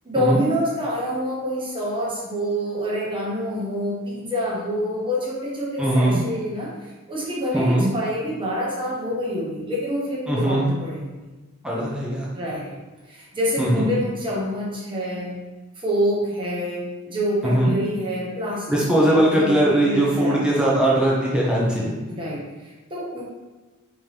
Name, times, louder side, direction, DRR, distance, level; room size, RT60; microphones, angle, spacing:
voice 1, 0.0-11.2 12.3-12.8 13.1-15.4 15.8-20.7 22.1-23.2, equal, 20° right, -5 dB, 1.0 m, -27 dB
voice 2, 5.8-6.2 7.5-7.9 10.3-10.7 11.6-12.3 13.6-13.9 17.4-17.7 18.7-22.0, right 1 dB, 5° right, -5 dB, 0.5 m, -20 dB
3.7 x 2.9 x 3.2 m, 1.2 s
head